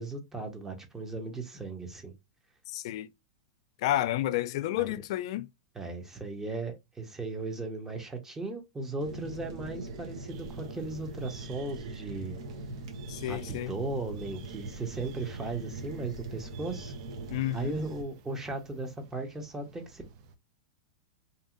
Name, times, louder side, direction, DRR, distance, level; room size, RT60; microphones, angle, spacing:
voice 1, 0.0-2.1 4.8-4.9 5.7-12.4 13.3-16.9 17.5-20.0, right 3 dB, 15° right, 0.8 m, -37 dB
voice 2, 2.7-3.1 3.8-5.5 13.1-13.7 17.3-17.7, left 14 dB, 60° left, 0.3 m, -30 dB
sound 1, 9.0-18.0, right 2 dB, 70° right, 0.9 m, -41 dB
sound 2, 10.3-20.4, right 6 dB, 50° right, 0.5 m, -55 dB
2.7 x 2.7 x 2.4 m
hypercardioid pair, 120°, 3 cm